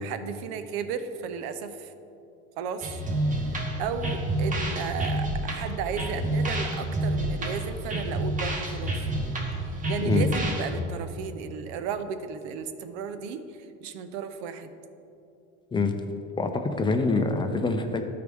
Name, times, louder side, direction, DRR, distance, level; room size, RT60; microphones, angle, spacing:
voice 1, 0.0-1.9 2.6-2.9 3.4-9.1 9.9-14.7, right 6 dB, 85° right, 10 dB, 0.7 m, -34 dB
sound 1, 2.8-10.8, right 1 dB, 25° right, 1.2 m, -29 dB
voice 2, 16.4-18.0, left 3 dB, 15° left, 5 dB, 0.5 m, -25 dB
13.5 x 4.8 x 3.5 m, 2.7 s
supercardioid pair, 125°, 31 cm